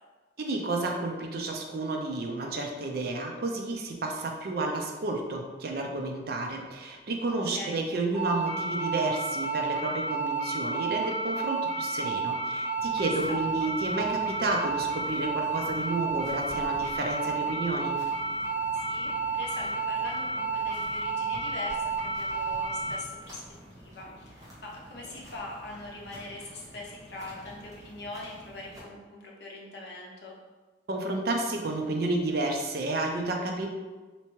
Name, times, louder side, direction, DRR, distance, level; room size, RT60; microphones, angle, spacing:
voice 1, 0.4-18.0 30.9-33.7, right 2 dB, 55° right, 2 dB, 0.4 m, -31 dB
voice 2, 7.5-7.8 13.3-13.4 18.7-23.4 23.7-30.4, left 2 dB, 60° left, -3 dB, 0.7 m, -42 dB
sound 1, 8.1-23.0, right 4 dB, ahead, 1.4 m, -31 dB
sound 2, 12.8-28.8, equal, 20° right, 0.8 m, -49 dB
3.3 x 2.9 x 3.0 m, 1.3 s
head